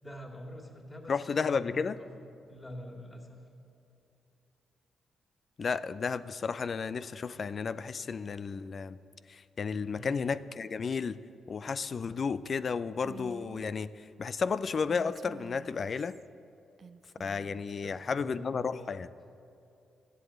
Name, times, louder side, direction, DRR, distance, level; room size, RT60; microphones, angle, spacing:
voice 1, 0.0-3.5 9.9-10.2 17.8-18.7, equal, 20° left, 2 dB, 2.4 m, -46 dB
voice 2, 1.1-2.0 5.6-9.0 9.3-11.2 11.5-16.2 17.2-19.1, left 5 dB, 50° left, 15 dB, 0.5 m, -33 dB
Female speech woman speaking, 13.0-13.7 14.8-16.3 16.8-17.7, right 5 dB, 55° right, 0.4 m, -49 dB
14.0 x 8.2 x 8.8 m, 2.6 s
supercardioid pair, 60°, 0 cm